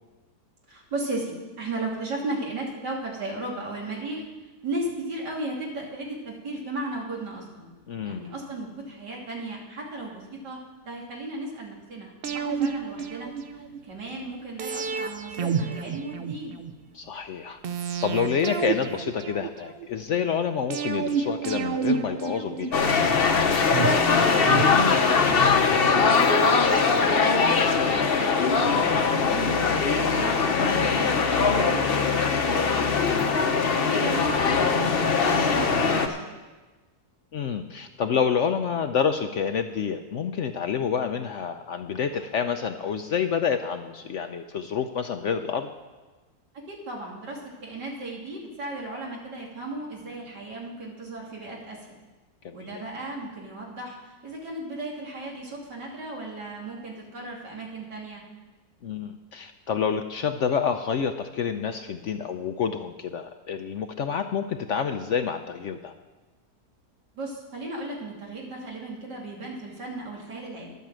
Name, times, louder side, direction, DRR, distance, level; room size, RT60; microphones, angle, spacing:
voice 1, 0.7-4.2 4.6-7.7 8.0-10.6 10.8-16.6 24.0-26.4 26.7-28.3 28.8-33.5 33.8-36.2 46.7-52.0 52.5-58.2 67.1-70.8, right 2 dB, 90° right, -2 dB, 3.1 m, -36 dB
voice 2, 7.9-8.2 16.9-17.6 18.0-22.8 28.7-29.2 34.0-34.2 37.3-45.7 52.4-52.7 58.8-65.9, left 7 dB, 65° left, 8 dB, 0.7 m, -28 dB
sound 1, 12.2-13.8 14.6-16.7 17.6-19.9 20.7-23.1 23.7-25.4 25.7-25.8, right 6 dB, 60° right, 0.6 m, -30 dB
sound 2, 22.7-36.1, left 5 dB, 45° left, 0.9 m, -21 dB
11.5 x 8.2 x 7.5 m, 1.2 s
omnidirectional pair, 1.8 m